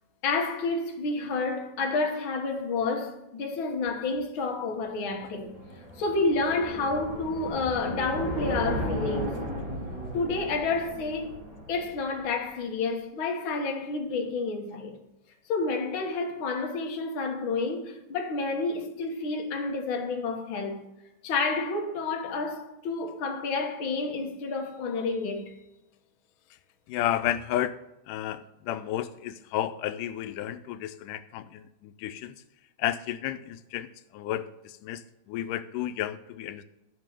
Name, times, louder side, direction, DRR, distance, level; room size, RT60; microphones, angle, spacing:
voice 1, 0.2-5.6 6.0-9.4 10.1-11.4 11.7-15.0 15.5-20.9 21.2-25.5, left 3 dB, 50° left, 1.9 m, -29 dB
sound 1, 4.9-12.3, equal, 35° right, 2.9 m, -35 dB
voice 2, 26.9-32.4 32.8-36.6, left 12 dB, 90° left, 2.2 m, -32 dB
13.5 x 5.5 x 7.6 m
omnidirectional pair, 3.6 m